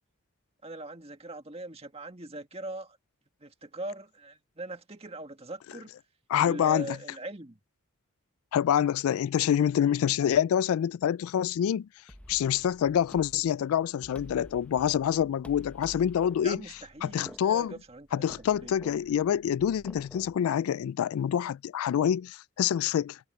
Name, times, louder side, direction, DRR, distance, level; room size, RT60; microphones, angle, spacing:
voice 1, 0.6-3.0 3.4-5.9 6.4-7.6 16.4-18.1 18.4-18.8, right 2 dB, 30° right, 1.8 m, -41 dB
voice 2, 6.3-7.0 8.5-11.9 12.3-16.6 17.0-17.7 18.1-23.2, left 9 dB, 85° left, 0.3 m, -26 dB
sound 1, 12.1-20.4, equal, 5° left, 0.9 m, -50 dB
head